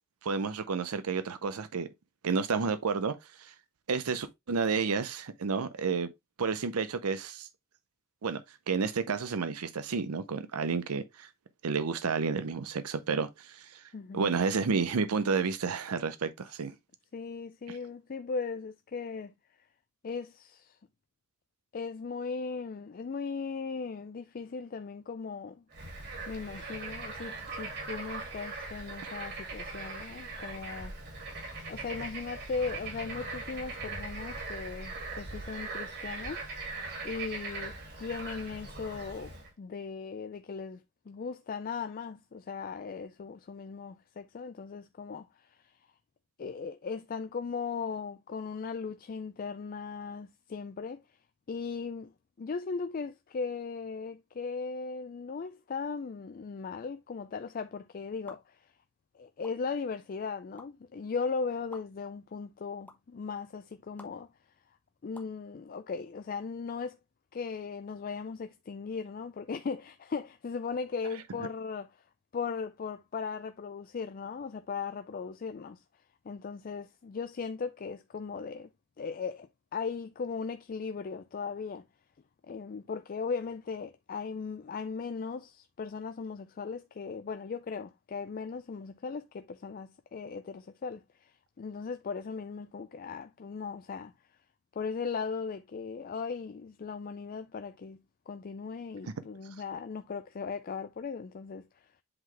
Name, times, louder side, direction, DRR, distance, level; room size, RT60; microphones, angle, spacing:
voice 1, 0.2-1.9 2.2-3.5 3.9-6.1 6.4-7.5 8.2-8.4 8.7-11.3 11.6-13.8 14.1-16.7 17.7-17.8 29.0-29.1, right 5 dB, 90° right, 0.6 m, -31 dB
voice 2, 13.9-14.3 17.1-19.3 20.0-20.8 21.7-25.6 26.3-30.9 31.7-36.4 37.0-45.7 46.4-51.0 51.5-52.1 52.4-58.7 59.1-64.3 65.0-67.0 67.3-72.0 72.3-75.8 76.2-78.7 79.0-81.9 82.4-94.1 94.7-98.0 98.3-101.9, left 5 dB, 40° left, 0.4 m, -38 dB
Bird / Frog, 25.7-39.5, right 3 dB, 50° right, 2.3 m, -40 dB
sound 1, 58.3-58.4 59.4-59.5 60.6-60.7 61.7-61.8 62.9-63.0 64.0-64.1 65.1-65.3, left 2 dB, 5° left, 1.0 m, -48 dB
7.8 x 3.9 x 3.2 m
head